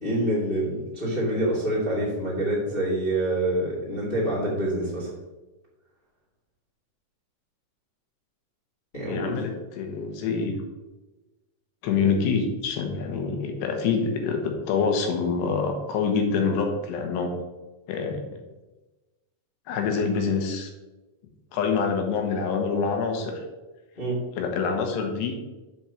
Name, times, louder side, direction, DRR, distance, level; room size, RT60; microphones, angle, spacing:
voice 1, 0.0-5.1 8.9-9.4 24.0-24.2, right 1 dB, 15° left, -6 dB, 2.1 m, -26 dB
voice 2, 9.1-10.5 11.8-17.3 17.9-18.2 19.7-20.7 21.5-23.4 24.4-25.3, left 5 dB, 85° left, 3 dB, 3.4 m, -26 dB
7.3 x 6.0 x 6.3 m, 1.1 s
omnidirectional pair, 4.8 m